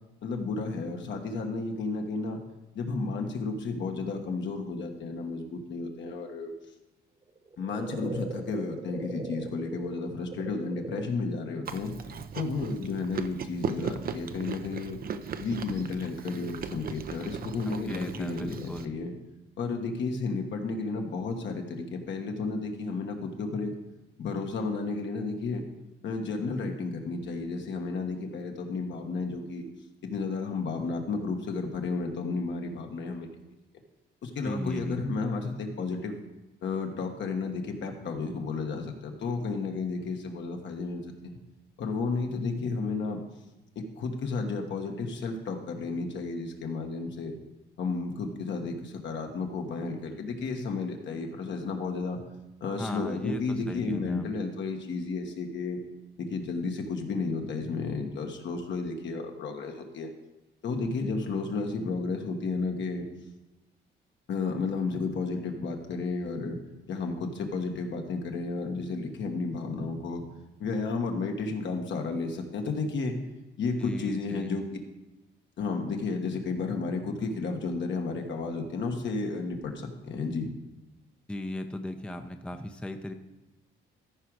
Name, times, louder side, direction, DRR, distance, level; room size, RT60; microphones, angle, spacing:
voice 1, 0.2-2.4 2.7-6.5 7.6-11.9 12.3-15.0 15.4-19.1 19.6-23.7 24.2-25.7 26.0-29.6 30.0-33.3 34.2-36.2 36.6-41.4 41.8-43.2 43.7-47.4 47.8-52.2 52.6-55.8 56.2-60.1 60.6-63.1 64.3-66.6 66.9-70.2 70.6-73.2 73.6-74.6 75.6-80.5, left 4 dB, 65° left, 3 dB, 1.5 m, -32 dB
sound 1, 7.3-11.1, right 3 dB, 30° right, 1.2 m, -40 dB
Chewing mastication, 11.6-18.8, right 6 dB, 50° right, 0.6 m, -38 dB
voice 2, 17.7-19.0 34.4-35.0 52.8-54.3 73.8-74.5 81.3-83.1, left 1 dB, 5° left, 6 dB, 0.6 m, -37 dB
14.0 x 5.0 x 4.8 m, 1.0 s
cardioid pair, 90°, 20 cm